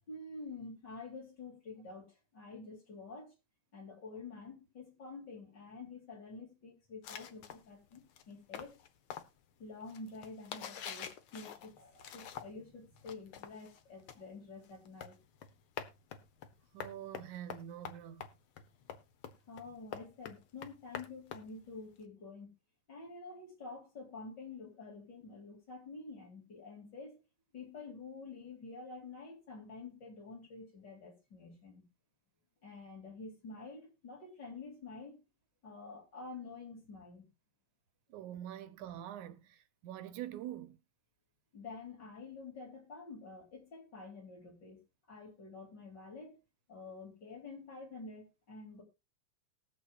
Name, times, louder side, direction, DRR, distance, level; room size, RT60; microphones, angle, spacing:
voice 1, 0.1-3.3 3.7-8.0 8.3-8.8 9.6-15.2 19.5-22.5 22.9-27.2 27.5-31.9 32.6-35.2 35.6-37.3 41.5-44.8 45.1-46.4 46.7-48.8, left 3 dB, 35° left, 3.7 m, -48 dB
sound 1, 7.0-12.7 13.0-22.0, left 8 dB, 65° left, 1.4 m, -47 dB
voice 2, 16.7-18.2 38.1-40.8, right 11 dB, 80° right, 2.3 m, -45 dB
20.5 x 7.4 x 2.4 m
omnidirectional pair, 3.4 m